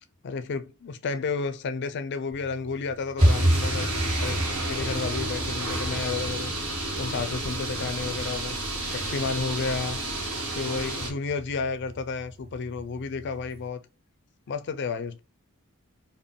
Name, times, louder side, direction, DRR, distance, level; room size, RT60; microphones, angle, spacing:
voice 1, 0.2-4.4 4.7-6.5 7.0-8.6 8.9-10.0 10.5-13.8 14.5-15.2, left 4 dB, 55° left, 0.4 m, -31 dB
sound 1, 2.3-13.7, equal, 30° right, 0.7 m, -31 dB
sound 2, 3.2-11.1, right 2 dB, 80° right, 1.3 m, -31 dB
3.7 x 2.1 x 3.6 m
head